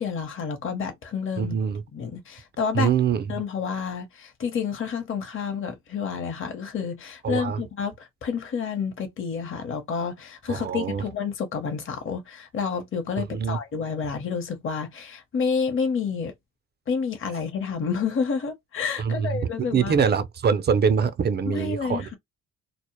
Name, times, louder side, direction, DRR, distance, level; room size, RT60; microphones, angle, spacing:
voice 1, 0.0-1.6 1.9-2.9 3.3-16.3 16.9-19.9 21.5-22.2, left 6 dB, 45° left, 0.8 m, -29 dB
voice 2, 1.4-1.8 2.7-3.4 7.2-7.6 10.5-11.0 13.2-13.6 19.0-22.1, right 6 dB, 35° right, 0.4 m, -24 dB
2.0 x 2.0 x 2.9 m
cardioid pair, 90°, 30 cm